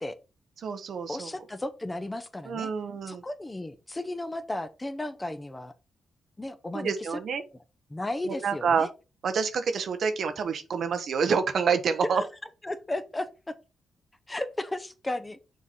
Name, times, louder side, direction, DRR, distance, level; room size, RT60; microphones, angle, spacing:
voice 1, 0.6-1.3 2.5-3.2 6.7-7.4 8.3-8.9 9.2-12.2, right 6 dB, 65° right, 0.9 m, -27 dB
voice 2, 1.1-2.7 3.1-5.7 6.4-7.2 7.9-8.9 12.0-12.1 12.6-13.6 14.3-15.4, left 1 dB, 20° left, 0.9 m, -34 dB
6.3 x 3.7 x 4.0 m
supercardioid pair, 60°, 0 cm